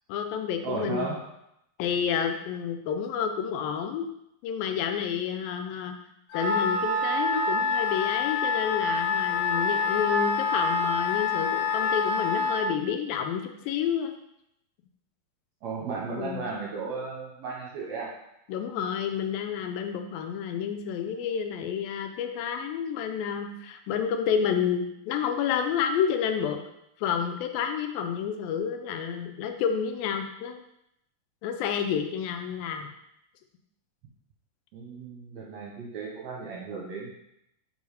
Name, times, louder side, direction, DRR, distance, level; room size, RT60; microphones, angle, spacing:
voice 1, 0.1-1.1 1.8-4.1 4.4-6.0 6.3-14.1 16.2-16.4 18.5-26.6 27.0-30.6 31.4-32.9, left 8 dB, 85° left, 5 dB, 2.3 m, -29 dB
voice 2, 0.6-1.2 15.6-18.1 34.7-37.1, right 4 dB, 65° right, -3 dB, 1.9 m, -35 dB
Wind instrument woodwind instrument, 6.3-12.7, left 4 dB, 65° left, 2.5 m, -26 dB
5.4 x 4.7 x 4.8 m, 0.80 s
omnidirectional pair, 4.2 m